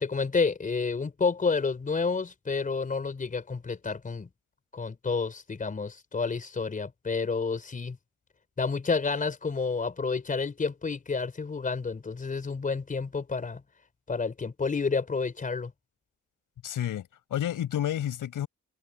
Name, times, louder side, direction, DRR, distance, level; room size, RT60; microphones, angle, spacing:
voice 1, 0.0-4.3 4.7-8.0 8.6-13.6 14.1-15.7, left 4 dB, 25° left, 4.8 m, -30 dB
voice 2, 16.6-18.5, left 11 dB, 80° left, 6.6 m, -30 dB
wide cardioid pair, 170°, 32 cm